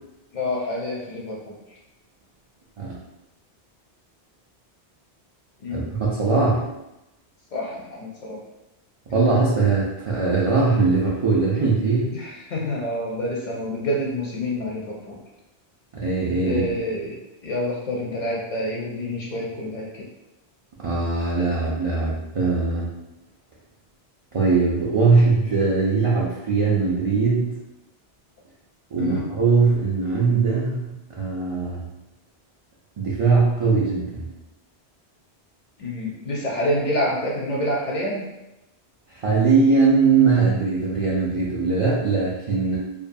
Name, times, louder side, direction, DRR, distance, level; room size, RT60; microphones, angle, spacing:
voice 1, 0.3-1.8 5.6-5.9 7.5-8.4 12.1-15.2 16.4-20.1 29.0-29.3 35.8-38.3, left 1 dB, 55° left, -3 dB, 0.5 m, -28 dB
voice 2, 5.7-6.7 9.1-12.1 15.9-16.7 20.8-22.9 24.3-27.6 28.9-30.9 31.2-31.8 33.0-34.2 39.2-42.8, right 4 dB, 55° right, -7 dB, 0.3 m, -20 dB
2.6 x 2.3 x 2.6 m, 0.95 s
omnidirectional pair, 1.1 m